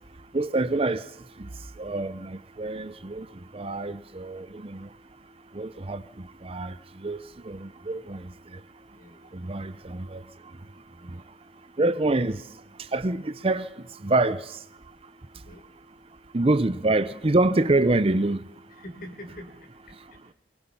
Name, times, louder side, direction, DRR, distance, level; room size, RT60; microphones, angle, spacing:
voice 1, 0.3-1.0 1.4-1.5 1.8-3.3 3.5-4.9 5.5-6.0 6.4-6.7 7.0-8.2 9.3-10.2 11.8-12.4 12.9-13.7 14.0-14.6 16.3-18.4, right 2 dB, 35° right, 0.7 m, -26 dB
voice 2, 8.9-9.5 11.1-11.2 15.3-15.6 18.8-19.7 20.1-20.2, equal, 55° left, 4.6 m, -44 dB
24.0 x 21.0 x 5.6 m
head